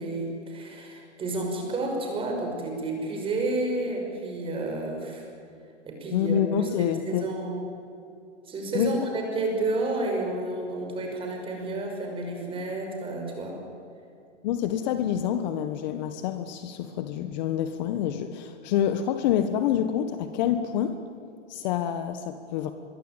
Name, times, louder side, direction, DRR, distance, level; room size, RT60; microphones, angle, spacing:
voice 1, 0.0-5.3 5.9-6.4 6.8-7.7 8.5-13.6, right 2 dB, 15° right, 2 dB, 5.8 m, -30 dB
voice 2, 6.1-7.3 8.7-8.9 14.4-21.0 21.5-22.7, left 10 dB, 35° left, 9 dB, 1.4 m, -27 dB
26.0 x 22.5 x 9.0 m, 2.6 s
hypercardioid pair, 150°, 36 cm